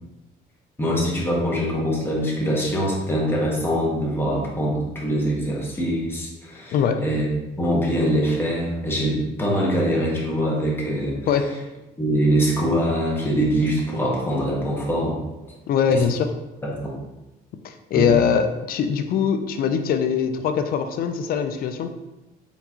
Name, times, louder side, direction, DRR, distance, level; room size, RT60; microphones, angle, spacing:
voice 1, 0.8-7.3 7.6-11.1 12.0-15.2 15.9-16.0 16.6-16.9 17.9-18.2, equal, 15° left, -4 dB, 1.4 m, -23 dB
voice 2, 6.7-7.0 11.3-11.5 15.7-16.3 17.6-21.9, left 7 dB, 60° left, 8 dB, 0.5 m, -22 dB
4.4 x 3.9 x 2.9 m, 1.0 s
cardioid pair, 110°, 17 cm